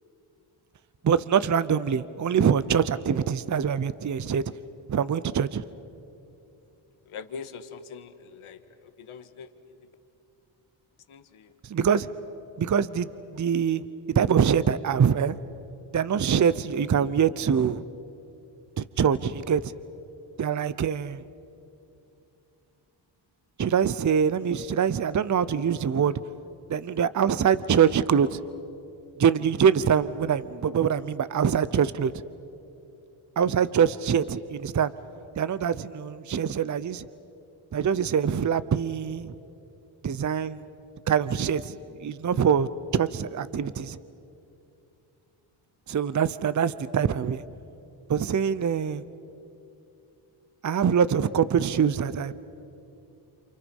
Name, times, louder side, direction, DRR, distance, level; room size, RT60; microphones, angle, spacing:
voice 1, 1.0-4.4 4.9-5.6 11.6-12.1 12.6-13.8 14.1-15.4 15.9-17.8 18.8-19.7 20.4-21.2 23.6-26.1 26.7-28.4 29.2-32.1 33.4-34.9 35.4-37.1 37.7-39.3 40.0-40.6 41.1-44.0 45.9-47.4 48.1-49.0 50.6-52.3, right 7 dB, 35° right, 15 dB, 0.8 m, -24 dB
voice 2, 7.0-9.9 11.1-11.5, left 6 dB, 75° left, 8 dB, 1.7 m, -43 dB
30.0 x 28.0 x 5.5 m, 2.7 s
cardioid pair, 60°, 50 cm